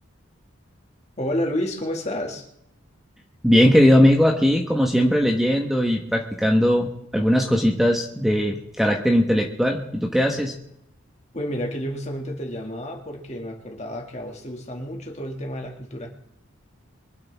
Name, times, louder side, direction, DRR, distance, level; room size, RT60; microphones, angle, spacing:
voice 1, 1.2-2.4 11.3-16.1, equal, 35° left, 2 dB, 2.2 m, -30 dB
voice 2, 3.4-10.5, equal, ahead, 1 dB, 1.2 m, -19 dB
23.5 x 11.5 x 3.6 m, 0.75 s
head